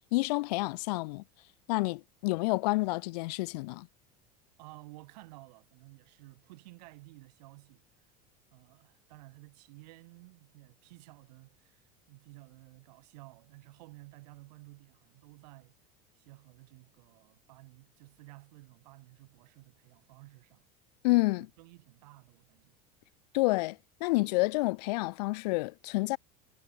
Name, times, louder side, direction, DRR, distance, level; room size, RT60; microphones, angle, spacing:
voice 1, 0.1-1.2 1.7-3.9 21.0-21.5 23.3-26.2, left 24 dB, 80° left, 0.7 m, -29 dB
voice 2, 4.6-8.2 8.5-15.8 16.1-20.6 21.4-22.8, right 22 dB, 80° right, 6.4 m, -54 dB
supercardioid pair, 130°, 21 cm